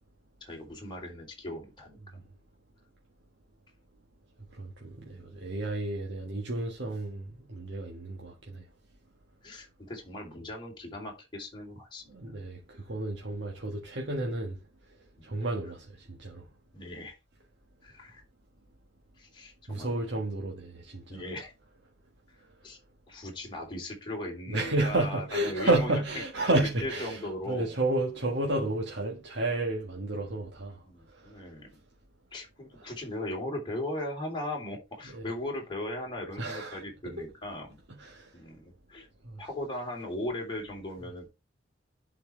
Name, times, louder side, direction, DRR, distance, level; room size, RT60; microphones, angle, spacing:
voice 1, 0.4-2.2 5.2-5.3 6.2-6.3 9.4-12.2 13.3-13.4 15.2-15.3 16.7-17.1 17.8-18.2 18.6-18.7 19.2-19.9 21.1-21.5 22.6-22.8 23.1-26.5 26.8-27.8 30.8-31.8 32.3-37.8 38.3-39.1 39.4-41.3, left 1 dB, 25° left, 3.3 m, -38 dB
voice 2, 4.5-8.6 12.1-14.6 15.2-16.5 19.7-21.2 24.5-27.2 27.5-30.8 31.1-31.3 32.8-32.9 35.1-35.3 36.4-37.3 38.0-38.3 39.2-39.4, right 2 dB, 65° right, 1.6 m, -31 dB
11.0 x 4.7 x 3.3 m
head